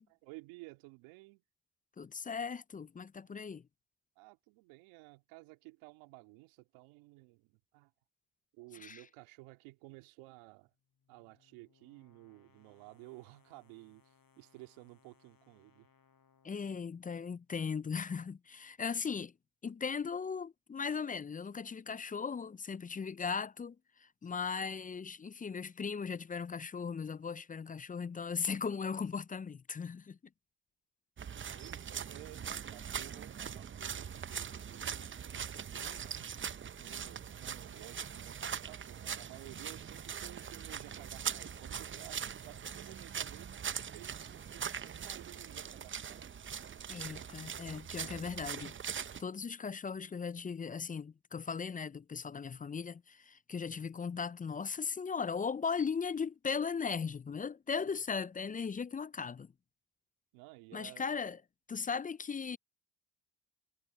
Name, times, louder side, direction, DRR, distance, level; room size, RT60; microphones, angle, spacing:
voice 1, 0.0-1.4 4.2-7.9 8.5-10.7 11.1-15.9 31.6-43.6 43.9-46.4 57.8-58.0 60.3-61.0, right 23 dB, 80° right, 2.4 m, -54 dB
voice 2, 2.0-3.6 8.8-9.0 16.4-19.3 19.6-30.2 46.9-59.5 60.7-61.4 61.7-62.6, left 5 dB, 20° left, 0.4 m, -38 dB
sound 1, 10.5-17.6, left 6 dB, 45° left, 7.6 m, -70 dB
sound 2, 31.2-49.2, right 7 dB, 25° right, 0.6 m, -42 dB
hypercardioid pair, 50°, 47 cm